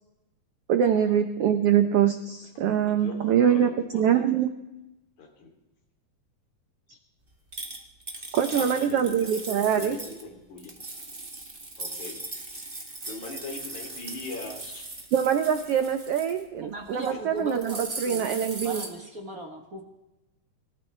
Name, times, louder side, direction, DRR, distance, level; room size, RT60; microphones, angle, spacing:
voice 1, 0.7-4.5 8.3-10.0 15.1-18.8, right 9 dB, 80° right, 8 dB, 1.3 m, -24 dB
voice 2, 2.8-4.2 5.2-5.5 8.1-9.4 9.8-10.7 11.8-12.2 12.5-14.9 16.9-17.2, left 3 dB, 65° left, 1 dB, 4.2 m, -41 dB
sound 1, 7.5-10.2 10.6-16.4 16.9-17.1 17.4-18.9, right 2 dB, 20° right, 1.8 m, -38 dB
voice 3, 16.6-18.2 18.6-19.8, right 2 dB, 65° right, 2 dB, 0.8 m, -37 dB
26.5 x 14.0 x 3.3 m, 0.96 s
omnidirectional pair, 3.8 m